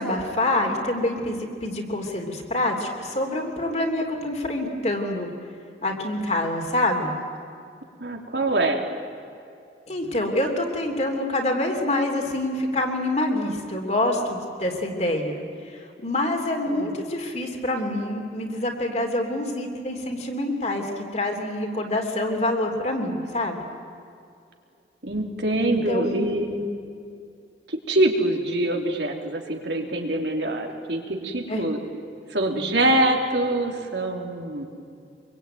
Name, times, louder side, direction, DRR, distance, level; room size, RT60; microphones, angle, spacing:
voice 1, 0.0-5.3 5.8-7.1 9.9-15.4 16.0-23.6 25.6-26.3 31.5-31.6, left 1 dB, 40° left, 3 dB, 3.2 m, -26 dB
voice 2, 8.0-8.8 16.7-16.9 25.0-26.6 27.7-31.8 32.3-34.6, right 1 dB, 75° right, 2 dB, 3.2 m, -24 dB
25.0 x 23.0 x 9.2 m, 2.4 s
head